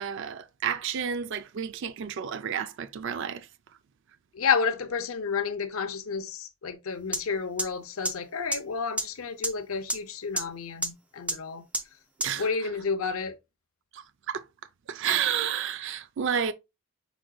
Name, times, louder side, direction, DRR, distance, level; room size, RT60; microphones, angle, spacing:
voice 1, 0.0-3.5 12.2-12.7 13.9-14.4 14.9-16.5, right 8 dB, 60° right, 0.4 m, -31 dB
voice 2, 4.3-11.6 12.4-13.3, left 5 dB, 75° left, 0.6 m, -30 dB
sound 1, 7.1-7.2 7.6-7.7 8.0-8.1 8.5-8.6 9.0-9.1 9.4-9.5 9.9-10.0 10.4-10.5 10.8-10.9 11.3-11.4 11.7-11.8 12.2-12.3, right 1 dB, 5° right, 0.5 m, -26 dB
6.0 x 3.7 x 2.3 m
head